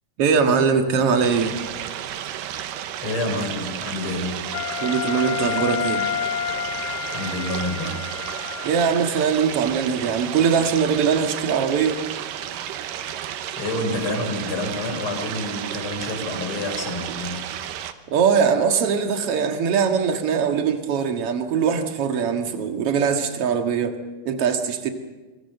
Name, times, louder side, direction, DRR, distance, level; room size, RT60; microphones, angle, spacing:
voice 1, 0.2-1.6 4.8-6.0 8.6-12.0 18.1-23.9 24.3-24.9, right 6 dB, 50° right, 5 dB, 2.4 m, -21 dB
sound 1, 1.2-17.9, right 10 dB, 85° right, 2.7 m, -32 dB
voice 2, 3.0-4.5 7.1-8.1 13.6-17.5, left 1 dB, 40° left, 3 dB, 4.9 m, -28 dB
Wind instrument woodwind instrument, 4.5-8.8, left 11 dB, 65° left, 2.6 m, -29 dB
26.5 x 23.0 x 6.7 m, 1.2 s
omnidirectional pair, 3.9 m